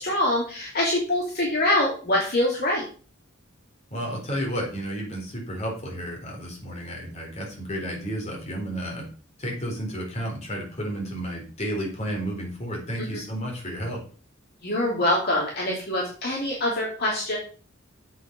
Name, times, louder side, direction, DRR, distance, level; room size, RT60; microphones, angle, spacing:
voice 1, 0.0-2.8 13.0-13.2 14.6-17.4, left 1 dB, 55° left, -3 dB, 3.1 m, -24 dB
voice 2, 3.9-9.1 9.4-14.0, equal, 35° left, -1 dB, 4.1 m, -32 dB
8.3 x 7.8 x 5.5 m, 0.40 s
head